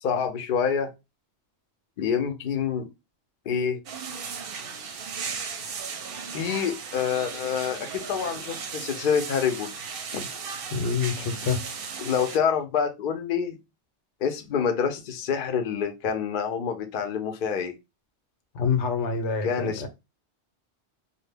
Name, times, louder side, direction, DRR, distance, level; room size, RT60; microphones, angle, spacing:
voice 1, 0.0-0.9 2.0-2.9 3.5-3.8 6.3-9.7 10.1-10.3 12.0-13.6 14.2-17.7 19.4-19.9, left 7 dB, 60° left, 0.6 m, -27 dB
sound 1, 3.9-12.4, right 6 dB, 65° right, 0.7 m, -36 dB
voice 2, 10.7-11.6 18.5-19.9, left 5 dB, 85° left, 0.9 m, -26 dB
2.1 x 2.0 x 3.2 m
omnidirectional pair, 1.2 m